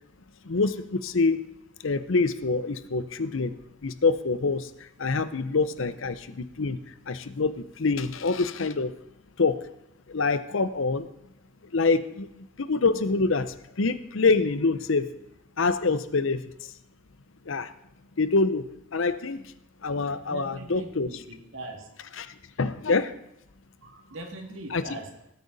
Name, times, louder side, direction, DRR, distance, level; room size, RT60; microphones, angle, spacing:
voice 1, 0.4-1.4 1.8-3.6 3.8-6.8 7.1-8.9 9.4-9.7 10.1-11.1 11.7-15.2 15.6-16.7 17.5-17.7 18.2-18.7 18.9-19.5 19.8-21.1 22.2-23.1 24.7-24.8, left 3 dB, 70° left, 13 dB, 0.7 m, -26 dB
voice 2, 20.2-22.0 23.8-25.3, right 2 dB, 70° right, 3 dB, 2.3 m, -41 dB
18.5 x 8.7 x 4.1 m, 0.83 s
head